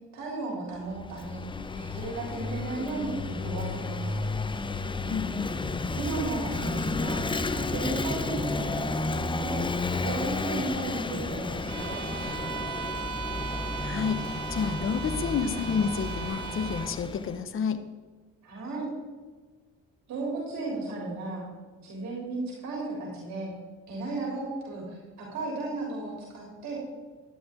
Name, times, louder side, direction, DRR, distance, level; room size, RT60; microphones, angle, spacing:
voice 1, 0.1-1.4 1.8-4.3 5.9-9.6 10.0-12.6 18.4-18.9 20.1-21.5 21.8-23.6 23.9-26.8, right 3 dB, 65° right, -2 dB, 3.7 m, -35 dB
Vehicle / Engine, 0.8-17.4, left 3 dB, 15° left, 0.6 m, -32 dB
voice 2, 5.1-5.6 13.8-14.2 14.5-17.8, left 6 dB, 45° left, 9 dB, 1.0 m, -29 dB
Bowed string instrument, 11.7-17.0, right 7 dB, 85° right, 0.9 m, -38 dB
12.5 x 10.5 x 3.8 m, 1.4 s
cardioid pair, 95°, 30 cm